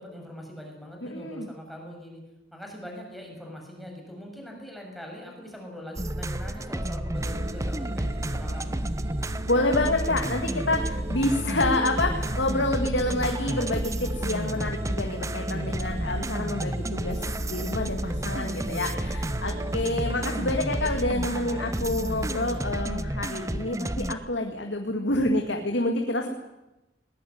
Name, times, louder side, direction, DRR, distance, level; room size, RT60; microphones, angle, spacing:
voice 1, 0.0-2.2 2.5-8.8, equal, ahead, 1 dB, 6.5 m, -42 dB
voice 2, 1.0-1.5 9.5-26.3, left 2 dB, 85° left, 3 dB, 2.2 m, -28 dB
sound 1, 6.0-24.1, right 1 dB, 15° right, 0.8 m, -32 dB
sound 2, 7.1-22.6, right 1 dB, 35° right, 1.3 m, -35 dB
20.5 x 20.0 x 9.6 m, 0.98 s
head